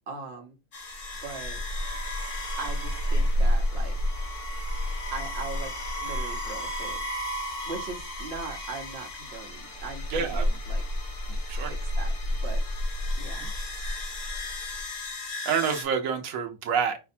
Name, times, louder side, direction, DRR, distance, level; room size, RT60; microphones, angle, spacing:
voice 1, 0.1-0.6 1.2-1.6 2.6-4.0 5.1-5.7 6.0-7.0 7.7-10.8 11.3-12.1 12.4-12.6 13.2-13.5, right 4 dB, 55° right, 4 dB, 1.1 m, -40 dB
sound 1, 0.7-15.8, left 1 dB, 70° left, 1.3 m, -30 dB
voice 2, 10.1-10.5 11.5-11.7 13.4-13.5 15.5-17.0, right 6 dB, 90° right, 5 dB, 1.1 m, -27 dB
5.0 x 2.2 x 4.2 m, 0.28 s
omnidirectional pair, 1.4 m